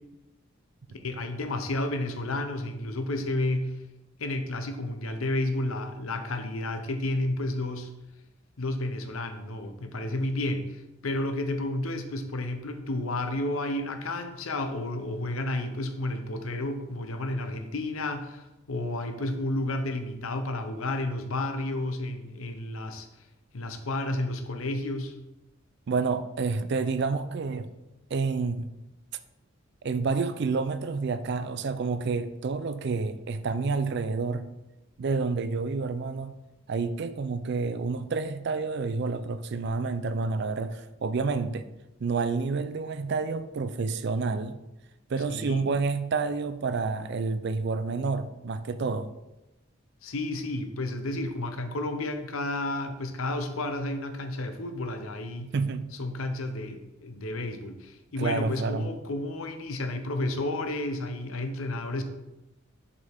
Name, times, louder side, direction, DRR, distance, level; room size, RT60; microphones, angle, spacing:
voice 1, 1.0-3.7 4.2-7.9 8.6-23.1 23.5-25.1 45.3-45.7 50.0-55.5 56.0-62.0, left 2 dB, 90° left, 7 dB, 0.8 m, -31 dB
voice 2, 25.9-27.7 28.1-28.7 29.8-34.5 35.0-36.3 36.7-41.6 42.0-44.6 45.1-49.1 55.4-55.9 58.2-58.9, right 4 dB, 55° right, 12 dB, 0.4 m, -29 dB
6.7 x 5.5 x 3.5 m, 0.98 s
head